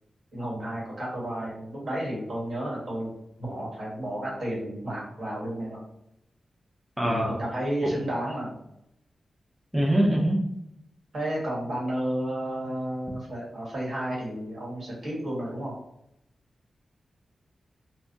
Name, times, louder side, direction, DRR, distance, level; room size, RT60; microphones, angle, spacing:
voice 1, 0.3-3.1 3.4-5.8 7.0-8.5 11.1-15.8, right 1 dB, 60° right, -5 dB, 1.5 m, -32 dB
voice 2, 7.0-7.4 7.8-7.9 9.7-10.5, right 1 dB, ahead, -3 dB, 0.4 m, -23 dB
3.2 x 2.2 x 2.6 m, 0.79 s
wide cardioid pair, 140°, 0 cm